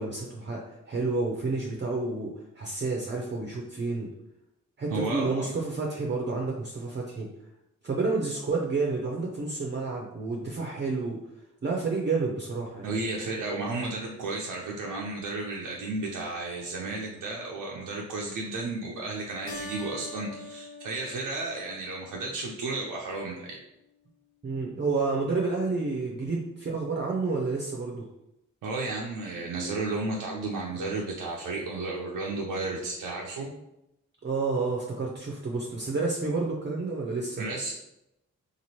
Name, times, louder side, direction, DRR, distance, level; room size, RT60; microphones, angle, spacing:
voice 1, 0.0-4.1 4.8-7.3 7.8-11.2 11.6-12.9 24.4-28.1 34.2-37.4, right 3 dB, 35° right, -2 dB, 0.6 m, -30 dB
voice 2, 4.9-5.5 12.8-23.6 28.6-33.5 37.4-37.7, right 3 dB, 80° right, -2 dB, 0.5 m, -33 dB
Keyboard (musical), 19.5-22.4, left 2 dB, 90° left, 0.6 m, -43 dB
2.9 x 2.5 x 2.8 m, 0.85 s
supercardioid pair, 45°, 32 cm